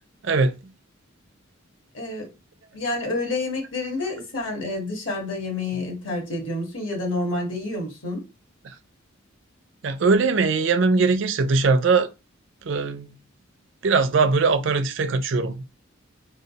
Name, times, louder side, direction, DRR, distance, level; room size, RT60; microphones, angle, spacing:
voice 1, 1.9-2.3 2.7-8.2, left 2 dB, 70° left, 1.5 m, -29 dB
voice 2, 9.8-12.1 12.7-13.1 13.8-15.7, right 4 dB, 65° right, 0.5 m, -20 dB
3.8 x 2.3 x 4.0 m
head